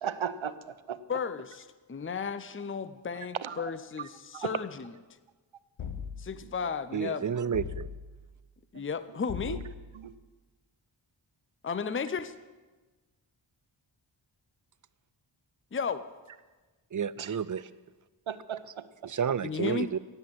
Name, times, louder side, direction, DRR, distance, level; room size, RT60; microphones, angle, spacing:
voice 1, 0.0-1.0 3.4-3.7 4.3-4.5 9.4-9.6 9.9-10.1 17.2-17.3 18.3-18.9, right 8 dB, 75° right, 13 dB, 0.9 m, -36 dB
voice 2, 1.1-4.9 6.2-7.3 8.7-9.6 11.6-12.3 15.7-16.1 19.4-19.9, left 5 dB, 25° left, 13 dB, 0.6 m, -34 dB
sound 1, 5.8-6.5 7.5-8.3 9.3-10.0, left 6 dB, 75° left, 1.1 m, -39 dB
voice 3, 6.9-7.9 8.7-8.8 16.9-17.7 19.0-20.0, right 7 dB, 40° right, 19 dB, 0.5 m, -31 dB
17.5 x 8.0 x 7.7 m, 1.3 s
wide cardioid pair, 60°, 48 cm